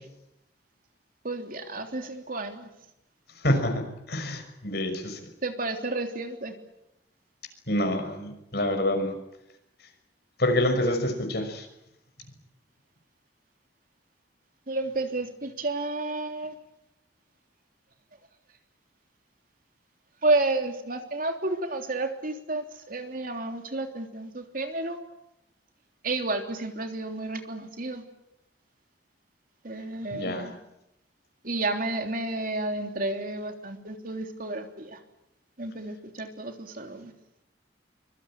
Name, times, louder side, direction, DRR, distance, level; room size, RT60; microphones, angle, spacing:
voice 1, 1.2-2.7 5.4-6.5 14.7-16.5 20.2-25.0 26.0-28.0 29.6-30.5 31.4-35.0 35.6-37.1, right 2 dB, 50° right, 5 dB, 3.3 m, -31 dB
voice 2, 3.4-5.2 7.7-9.1 10.4-11.6 30.1-30.5, left 1 dB, 65° left, 6 dB, 5.9 m, -27 dB
25.0 x 23.5 x 8.8 m, 0.85 s
head